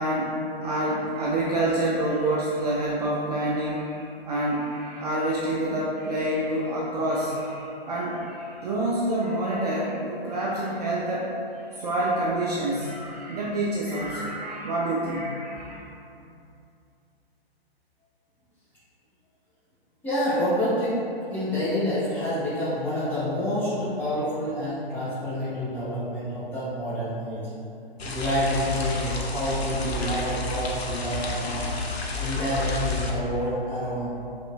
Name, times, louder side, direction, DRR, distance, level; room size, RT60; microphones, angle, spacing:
voice 1, 0.0-15.8, right 1 dB, 40° right, -5 dB, 0.5 m, -27 dB
voice 2, 20.0-21.0 21.3-27.5 28.0-31.7 32.2-34.2, equal, 5° left, -14 dB, 1.1 m, -28 dB
sound 1, 28.0-33.1, left 3 dB, 80° left, 0.6 m, -30 dB
4.0 x 3.4 x 2.3 m, 2.6 s
figure-of-eight pair, 125°, 31 cm